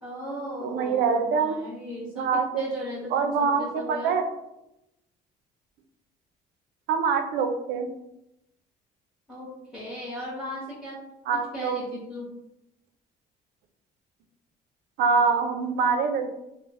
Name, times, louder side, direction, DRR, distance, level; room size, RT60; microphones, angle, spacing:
voice 1, 0.0-4.1 9.3-11.0 11.3-12.3, left 1 dB, 5° right, -9 dB, 1.1 m, -37 dB
voice 2, 0.6-1.6 2.1-2.6 3.1-4.3 6.9-7.9 11.3-11.8 15.0-16.3, right 5 dB, 75° right, 6 dB, 0.4 m, -24 dB
3.1 x 2.0 x 2.4 m, 0.86 s
cardioid pair, 110°, 17 cm